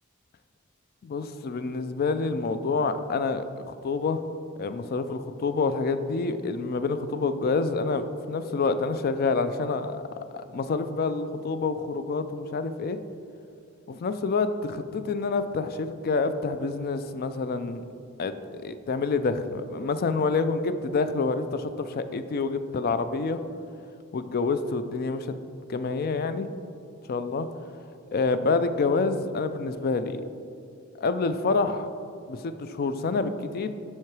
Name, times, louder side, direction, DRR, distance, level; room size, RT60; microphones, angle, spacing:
voice 1, 1.0-4.2 4.6-10.0 10.3-13.0 13.9-17.8 18.2-23.4 24.1-25.3 25.7-26.5 27.1-27.5 28.1-30.2 31.0-31.9 32.3-33.7, left 4 dB, 45° left, 11 dB, 0.4 m, -27 dB
7.6 x 5.6 x 4.7 m, 2.5 s
head